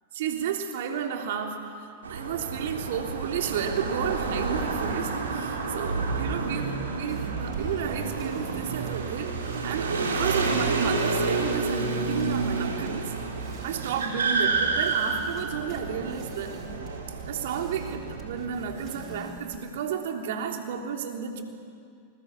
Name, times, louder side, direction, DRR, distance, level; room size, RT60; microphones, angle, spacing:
voice 1, 0.2-9.3 9.6-13.1 13.6-16.6 17.3-21.4, right 7 dB, 70° right, 3 dB, 3.4 m, -32 dB
sound 1, 2.0-19.2, right 4 dB, 85° right, 4.0 m, -30 dB
sound 2, 7.1-19.6, right 5 dB, 40° right, 4.2 m, -44 dB
28.0 x 21.0 x 8.4 m, 2.3 s
hypercardioid pair, 100°, 0 cm